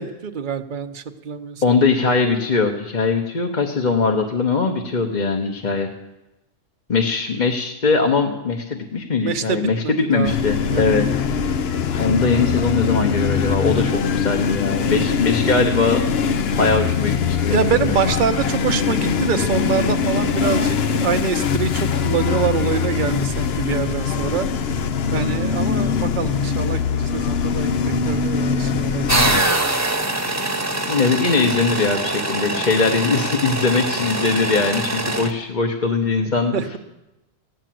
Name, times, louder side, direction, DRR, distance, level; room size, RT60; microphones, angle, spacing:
voice 1, 0.0-1.8 9.2-10.4 10.7-11.0 17.5-24.5 25.1-29.5 36.5-36.8, right 6 dB, 45° right, 8 dB, 0.9 m, -25 dB
voice 2, 1.6-5.9 6.9-11.1 12.0-16.1 16.6-18.0 30.9-36.5, left 4 dB, 40° left, 2 dB, 1.1 m, -21 dB
sound 1, 10.2-29.4, left 6 dB, 60° left, 0.9 m, -22 dB
sound 2, 29.1-35.3, right 2 dB, 15° right, 1.1 m, -23 dB
15.5 x 10.0 x 7.6 m, 0.97 s
omnidirectional pair, 1.3 m